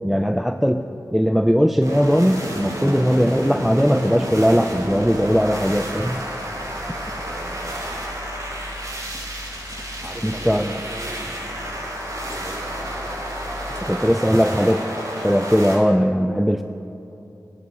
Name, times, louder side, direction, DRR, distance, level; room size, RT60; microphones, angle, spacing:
voice 1, 0.0-0.8 1.1-6.2 10.2-10.7 13.9-14.8 15.1-16.6, equal, ahead, 7 dB, 0.3 m, -19 dB
sound 1, 1.8-15.8, equal, 50° right, 2.0 m, -31 dB
sound 2, 4.7-13.9, left 2 dB, 35° left, 0.7 m, -40 dB
voice 2, 7.2-7.8 10.0-13.1, right 1 dB, 30° right, 4 dB, 1.0 m, -39 dB
11.0 x 4.0 x 7.0 m, 2.8 s
cardioid pair, 45°, 7 cm